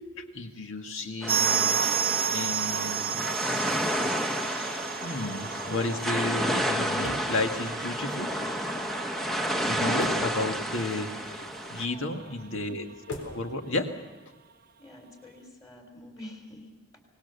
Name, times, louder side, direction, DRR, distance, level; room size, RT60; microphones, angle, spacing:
voice 1, 0.0-1.9 2.3-3.3 4.5-8.3 9.6-12.9 13.2-13.9, left 2 dB, 60° left, 5 dB, 1.9 m, -33 dB
sound 1, 1.2-11.9, equal, ahead, 1.1 m, -31 dB
sound 2, 1.3-11.8 12.1-12.2 12.4-12.5 13.1-13.2, right 8 dB, 40° right, 0.7 m, -33 dB
sound 3, 8.0-13.5, left 1 dB, 85° left, 4.2 m, -45 dB
voice 2, 11.8-12.4 14.8-17.0, left 1 dB, 15° left, 3 dB, 3.5 m, -47 dB
24.5 x 19.5 x 6.9 m, 1.2 s
head